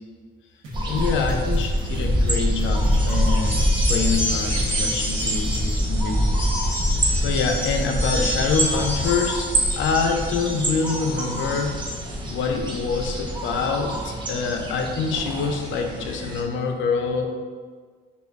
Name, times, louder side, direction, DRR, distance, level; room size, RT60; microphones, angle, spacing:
sound 1, 0.6-5.7, equal, 90° right, 0.8 m, -38 dB
sound 2, 0.7-16.4, equal, 25° right, 0.6 m, -25 dB
voice 1, 0.8-3.6 3.9-6.2 7.2-9.5 9.8-11.7 12.2-17.3, left 5 dB, 75° left, 3 dB, 0.5 m, -25 dB
sound 3, 2.6-12.0, equal, 10° left, 0.9 m, -31 dB
3.5 x 2.3 x 3.4 m, 1.5 s
cardioid pair, 90°, 20 cm